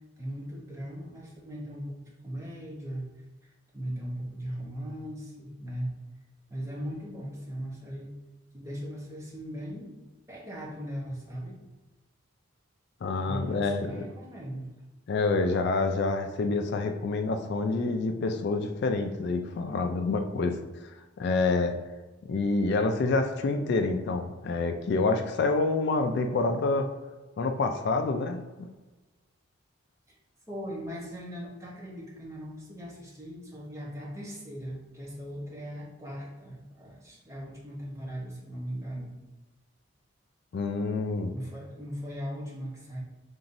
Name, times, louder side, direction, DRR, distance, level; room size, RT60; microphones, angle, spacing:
voice 1, 0.2-3.1 3.7-5.9 6.5-8.1 8.5-9.9 10.3-11.6 13.2-14.7 30.5-39.1 41.3-43.0, equal, 15° right, -3 dB, 0.8 m, -38 dB
voice 2, 13.0-14.0 15.1-21.7 22.3-26.9 27.4-28.4 40.5-41.3, left 3 dB, 55° left, 6 dB, 0.3 m, -27 dB
5.4 x 2.9 x 2.6 m, 1.2 s
head